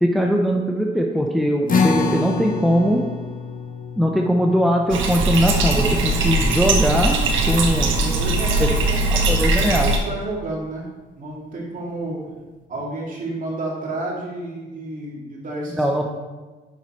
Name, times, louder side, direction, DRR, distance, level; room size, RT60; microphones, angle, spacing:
voice 1, 0.0-3.0 4.0-7.2 7.5-7.9 8.6-8.7 9.1-9.9 15.7-16.1, equal, ahead, 1 dB, 0.7 m, -20 dB
sound 1, 1.7-8.3, left 4 dB, 45° left, 1.1 m, -28 dB
Bathtub (filling or washing), 4.9-10.0, right 2 dB, 75° right, 1.3 m, -20 dB
voice 2, 7.8-10.9 11.2-12.4 12.7-16.1, right 2 dB, 40° right, -4 dB, 2.8 m, -31 dB
7.4 x 5.6 x 4.5 m, 1.2 s
cardioid pair, 90°, 20 cm